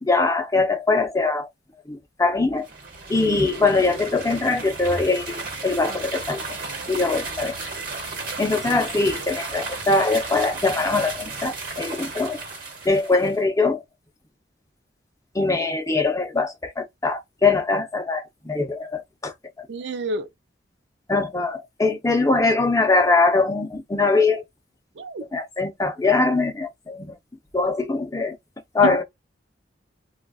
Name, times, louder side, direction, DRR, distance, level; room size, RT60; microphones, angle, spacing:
voice 1, 0.0-1.5 1.9-2.7 3.1-6.4 6.9-7.5 8.4-12.4 12.8-13.8 15.3-19.3 19.6-19.7 21.1-24.4 25.3-27.1 27.5-28.4 28.7-29.0, left 3 dB, 20° left, 0.6 m, -22 dB
sound 1, 2.6-13.4, right 3 dB, 50° right, 1.2 m, -34 dB
voice 2, 19.7-20.3 25.0-25.2 28.8-29.0, right 3 dB, 65° right, 0.4 m, -28 dB
3.8 x 2.4 x 2.3 m
head